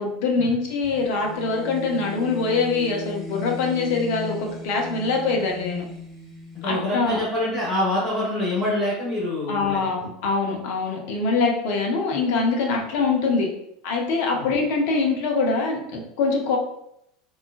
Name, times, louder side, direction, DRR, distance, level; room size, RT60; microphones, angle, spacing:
voice 1, 0.0-5.8 6.7-7.2 9.5-13.5 13.8-16.6, left 4 dB, 55° left, 0 dB, 0.6 m, -24 dB
sound 1, 0.8-7.5, left 3 dB, 5° right, 1.3 m, -37 dB
voice 2, 6.5-9.8 14.3-14.5, left 1 dB, 35° left, -8 dB, 1.1 m, -25 dB
3.6 x 2.3 x 2.4 m, 0.76 s
figure-of-eight pair, 75°, 0 cm